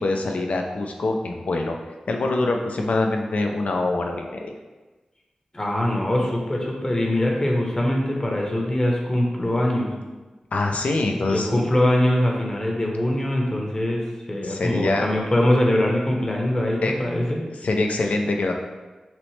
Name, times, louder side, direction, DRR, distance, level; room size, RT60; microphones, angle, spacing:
voice 1, 0.0-1.8 2.1-4.5 10.5-11.6 14.4-15.1 16.8-16.9 17.6-18.5, left 2 dB, 80° left, 2 dB, 0.5 m, -24 dB
voice 2, 5.5-9.9 11.2-17.4, left 1 dB, 25° left, -1 dB, 0.8 m, -22 dB
5.9 x 2.1 x 3.2 m, 1.2 s
wide cardioid pair, 70°, 2 cm